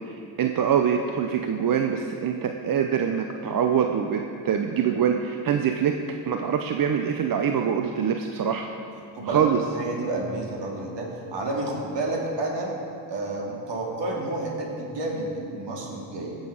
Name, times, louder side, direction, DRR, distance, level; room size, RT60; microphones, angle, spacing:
voice 1, 0.1-5.9 6.3-8.7 9.2-9.6, right 8 dB, 45° right, 5 dB, 0.7 m, -24 dB
voice 2, 9.1-9.5 9.7-12.7 13.1-16.4, right 2 dB, 60° right, -1 dB, 2.5 m, -30 dB
15.5 x 6.5 x 5.0 m, 2.5 s
supercardioid pair, 60°, 48 cm